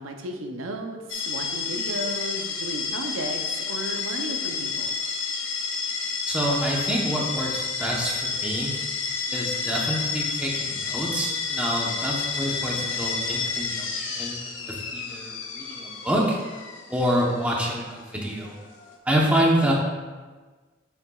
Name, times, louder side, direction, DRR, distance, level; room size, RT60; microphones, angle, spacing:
voice 1, 0.0-4.9, right 1 dB, 80° right, 3 dB, 0.6 m, -34 dB
sound 1, 1.1-19.0, left 5 dB, 65° left, 0.8 m, -30 dB
voice 2, 6.2-8.7 9.3-16.4 16.9-18.5 19.1-19.7, equal, 5° right, -3 dB, 0.9 m, -27 dB
7.1 x 6.6 x 2.3 m, 1.4 s
head